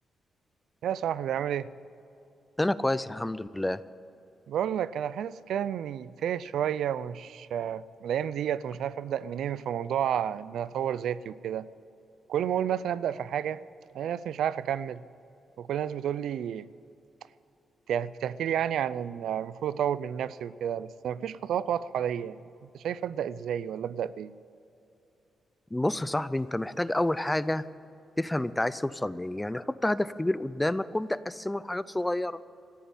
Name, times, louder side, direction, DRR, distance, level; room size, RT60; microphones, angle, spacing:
voice 1, 0.8-1.7 4.5-11.7 12.3-13.6 13.9-15.0 15.6-16.7 17.9-22.4 22.7-24.3, right 9 dB, 85° right, 18 dB, 0.4 m, -31 dB
voice 2, 2.6-3.8 25.7-27.7 28.2-32.4, left 1 dB, 10° left, 16 dB, 0.4 m, -29 dB
14.0 x 10.5 x 9.0 m, 2.7 s
wide cardioid pair, 150°, 0 cm